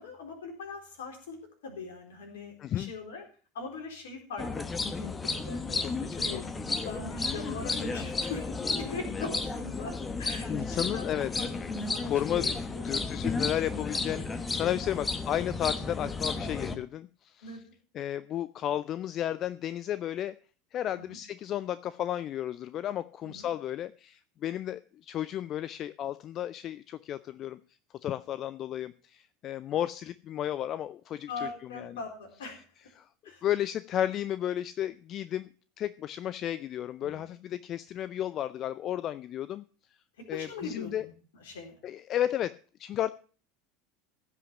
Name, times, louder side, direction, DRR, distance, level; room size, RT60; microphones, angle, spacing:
voice 1, 0.0-3.3 3.5-4.5 4.8-5.6 6.1-9.9 10.2-12.9 17.4-17.7 20.9-21.2 23.2-23.5 31.3-32.6 33.2-33.4 37.0-37.3 40.3-41.8, left 4 dB, 65° left, 2 dB, 3.9 m, -41 dB
voice 2, 2.6-2.9 5.8-6.4 10.5-11.3 12.0-12.5 12.8-17.6 17.9-20.4 20.7-27.6 28.0-32.0 33.0-33.1 33.4-35.5 35.8-39.6 40.3-41.0 41.8-43.1, left 11 dB, 40° left, 16 dB, 0.5 m, -33 dB
sound 1, 4.4-16.8, left 3 dB, 20° left, 1.2 m, -33 dB
15.5 x 5.8 x 7.0 m, 0.39 s
figure-of-eight pair, 75°, 0 cm